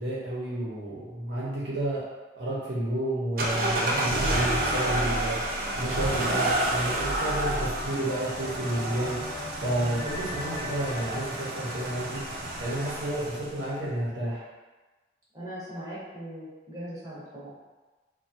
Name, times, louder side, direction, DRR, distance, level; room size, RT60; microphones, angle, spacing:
voice 1, 0.0-2.0 2.3-5.4 5.8-12.2 12.6-14.4, right 1 dB, 70° right, -7 dB, 0.8 m, -31 dB
sound 1, 3.4-13.6, right 1 dB, 50° right, 0.4 m, -29 dB
sound 2, 6.9-13.6, left 2 dB, 30° left, 0.3 m, -42 dB
voice 2, 15.3-17.5, equal, 20° right, -10 dB, 0.9 m, -39 dB
3.2 x 2.3 x 2.8 m, 1.2 s
head